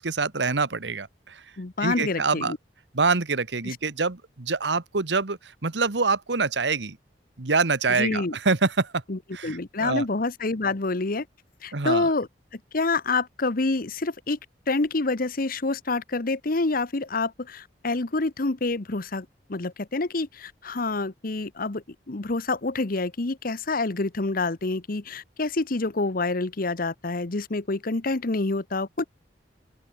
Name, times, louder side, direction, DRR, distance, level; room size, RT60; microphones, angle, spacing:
voice 1, 0.0-1.4 1.8-2.5 2.9-7.0 7.4-9.0 9.3-10.0 11.7-12.1, right 4 dB, 80° right, 1.3 m, -25 dB
voice 2, 1.6-2.6 3.6-3.8 7.9-8.4 9.1-11.2 11.6-14.4 14.7-29.1, left 3 dB, 55° left, 1.1 m, -27 dB
open air
head